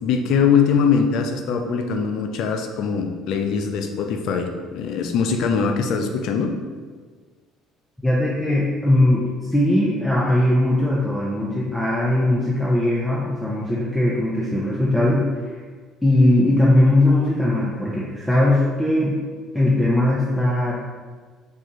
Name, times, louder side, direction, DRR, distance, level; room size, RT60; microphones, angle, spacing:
voice 1, 0.0-6.5, left 6 dB, 65° left, 5 dB, 0.4 m, -22 dB
voice 2, 8.0-15.6 16.0-19.2 19.5-20.8, left 1 dB, 5° left, -5 dB, 0.7 m, -19 dB
4.6 x 2.4 x 2.9 m, 1.5 s
hypercardioid pair, 65°, 0 cm